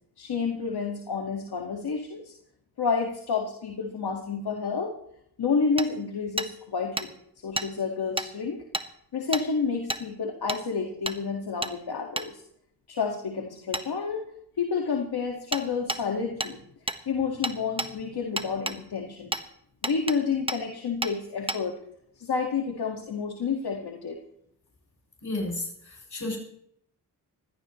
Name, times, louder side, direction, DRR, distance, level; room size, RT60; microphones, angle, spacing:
voice 1, 0.2-2.3 2.8-5.0 5.4-7.1 7.4-8.6 9.1-12.4 12.9-14.3 14.6-16.6 17.1-19.3 19.8-21.8 22.2-24.2, left 5 dB, 70° left, 2 dB, 1.9 m, -29 dB
Hammer, 5.8-5.9 6.4-6.5 7.0-7.1 7.6-7.7 8.2-8.3 8.7-8.9 9.3-9.5 9.9-10.0 10.5-10.6 11.1-11.2 11.6-11.7 12.2-12.3 13.7-13.9 15.5-15.6 15.9-16.0 16.4-16.5 16.9-17.0 17.4-17.9 18.4-18.8 19.3-19.4 19.8-20.2 20.5-20.6 21.0-21.1 21.5-21.6, right 1 dB, 15° right, 1.3 m, -30 dB
voice 2, 25.2-25.6 26.1-26.4, left 2 dB, 45° left, -2 dB, 8.0 m, -30 dB
22.0 x 16.5 x 3.1 m, 0.72 s
cardioid pair, 45°, 40 cm